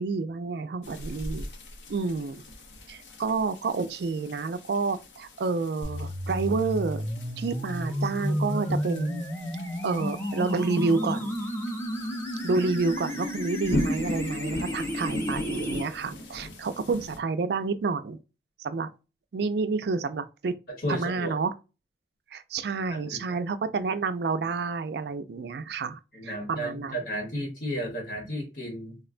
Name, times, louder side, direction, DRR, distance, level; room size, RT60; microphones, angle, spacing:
voice 1, 0.0-1.4 1.9-2.4 2.9-7.0 7.4-9.2 9.8-11.4 12.4-18.2 18.6-18.9 19.3-20.5 20.9-21.5 22.3-27.0, right 4 dB, 65° right, 0.4 m, -29 dB
sound 1, 0.8-17.2, equal, 85° left, 0.7 m, -39 dB
sound 2, 5.8-15.8, equal, 15° left, 0.5 m, -32 dB
voice 2, 20.7-21.3 22.9-23.4 26.1-29.0, equal, 55° left, 1.0 m, -33 dB
3.6 x 2.1 x 2.4 m
head